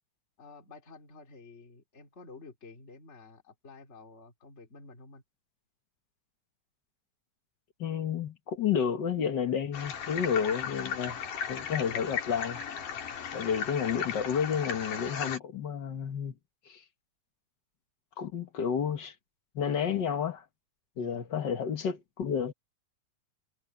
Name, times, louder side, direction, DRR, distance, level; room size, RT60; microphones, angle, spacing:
voice 1, 0.4-5.2 20.9-21.2, left 3 dB, 20° left, 3.1 m, -51 dB
voice 2, 7.8-11.2 11.5-12.6 13.3-16.4 16.6-16.9 18.2-19.2 19.5-20.5 21.0-22.5, left 7 dB, 55° left, 1.2 m, -31 dB
sound 1, 9.7-15.4, left 7 dB, 90° left, 4.1 m, -36 dB
omnidirectional pair, 3.6 m